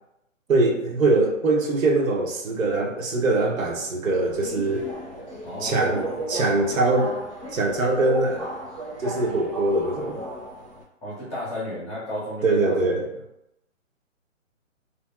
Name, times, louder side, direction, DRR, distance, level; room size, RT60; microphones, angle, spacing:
voice 1, 0.5-4.9 5.6-7.2 7.5-8.5 9.0-10.2 12.4-13.0, right 2 dB, 75° right, 1 dB, 0.7 m, -22 dB
Subway metro underground, 4.0-10.8, right 1 dB, 25° right, 0.6 m, -34 dB
voice 2, 5.4-6.2 11.0-13.0, left 1 dB, 10° left, -12 dB, 0.6 m, -34 dB
3.0 x 2.6 x 2.2 m, 0.86 s
hypercardioid pair, 170°, 40 cm